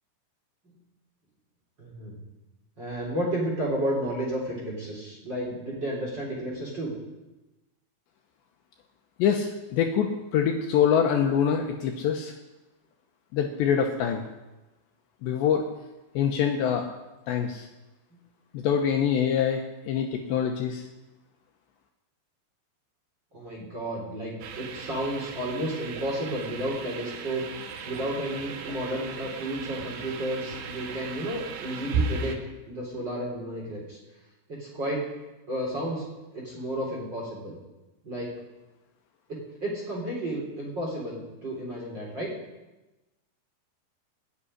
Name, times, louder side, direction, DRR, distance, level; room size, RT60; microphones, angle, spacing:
voice 1, 1.8-2.2 2.8-6.9 23.3-27.5 27.8-32.4 32.7-34.0 34.5-35.0 35.5-37.5 38.0-38.3 39.3-42.3, right 1 dB, 25° right, -4 dB, 3.6 m, -32 dB
voice 2, 9.2-12.3 13.3-14.2 15.2-15.7 16.2-16.9 17.3-17.7 18.5-20.9, left 8 dB, 75° left, 3 dB, 2.9 m, -25 dB
sound 1, 24.4-32.4, right 4 dB, 80° right, 3.9 m, -35 dB
18.0 x 6.9 x 9.9 m, 1.1 s
omnidirectional pair, 5.8 m